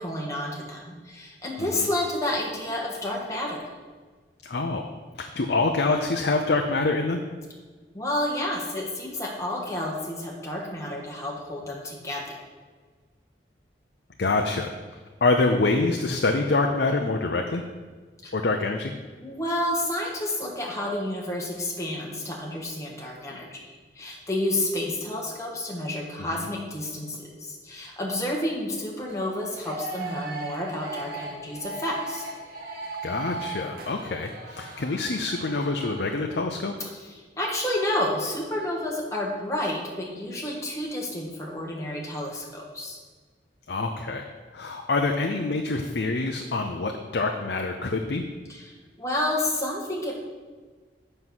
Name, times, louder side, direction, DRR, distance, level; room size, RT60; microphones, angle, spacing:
voice 1, 0.0-3.7 7.9-12.4 18.2-18.3 19.2-32.3 36.8-43.0 48.5-48.7 49.0-50.1, left 1 dB, 15° left, -3 dB, 1.5 m, -30 dB
voice 2, 4.4-4.8 5.2-7.2 14.2-14.7 15.2-17.6 18.3-18.9 26.3-26.5 33.0-36.7 43.7-44.3 44.5-48.2, left 3 dB, 65° left, 3 dB, 0.6 m, -26 dB
sound 1, 29.0-36.2, right 3 dB, 55° right, 1.3 m, -38 dB
7.6 x 5.4 x 6.2 m, 1.4 s
head